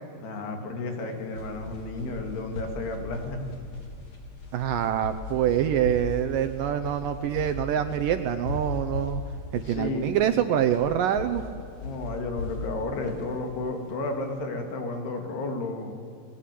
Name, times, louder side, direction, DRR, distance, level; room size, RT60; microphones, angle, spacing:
voice 1, 0.2-3.5 9.7-10.2 11.8-16.0, left 2 dB, 80° left, 4 dB, 4.6 m, -32 dB
sound 1, 1.0-14.3, left 3 dB, 55° left, 4.6 m, -37 dB
voice 2, 4.5-9.2 9.5-11.4, right 10 dB, 75° right, 9 dB, 2.2 m, -25 dB
29.5 x 21.0 x 8.6 m, 2.4 s
omnidirectional pair, 4.6 m